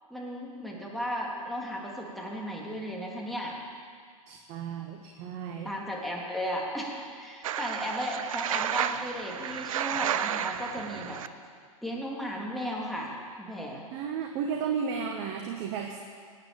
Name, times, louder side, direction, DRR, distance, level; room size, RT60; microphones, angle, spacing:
voice 1, 0.1-3.5 5.7-11.2 11.8-13.1 13.4-13.8, equal, ahead, -3 dB, 3.3 m, -35 dB
voice 2, 4.3-5.7 13.9-16.0, right 6 dB, 45° right, 3 dB, 1.5 m, -33 dB
sound 1, 7.4-11.3, right 10 dB, 65° right, 0.7 m, -32 dB
19.0 x 9.1 x 7.2 m, 2.1 s
hypercardioid pair, 100°, 18 cm